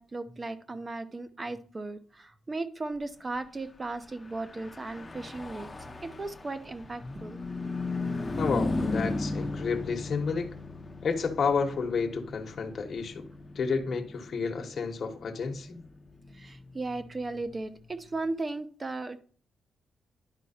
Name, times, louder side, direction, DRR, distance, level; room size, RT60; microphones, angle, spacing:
voice 1, 0.0-7.4 16.3-19.2, right 2 dB, 25° right, 11 dB, 0.8 m, -36 dB
Car passing by / Truck, 4.3-18.0, left 3 dB, 20° left, 0.8 m, -37 dB
voice 2, 8.4-10.5 11.0-13.2 13.5-15.8, left 5 dB, 55° left, 3 dB, 1.2 m, -30 dB
11.0 x 4.5 x 4.3 m, 0.42 s
cardioid pair, 105°, 0 cm